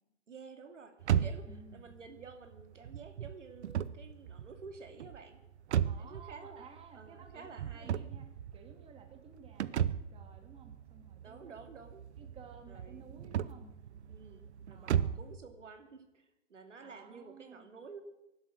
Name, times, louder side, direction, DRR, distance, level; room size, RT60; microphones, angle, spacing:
voice 1, 0.3-5.4 6.0-8.0 11.2-12.1 12.7-13.1 14.1-18.0, right 4 dB, 90° right, 6 dB, 2.6 m, -51 dB
sound 1, 1.0-15.4, right 9 dB, 65° right, 0.8 m, -36 dB
voice 2, 1.5-2.0 5.8-8.3 8.5-11.7 12.2-13.7 14.7-15.2 16.8-17.7, right 5 dB, 15° right, 5 dB, 2.1 m, -56 dB
18.0 x 11.5 x 6.3 m, 0.91 s
hypercardioid pair, 135°, 36 cm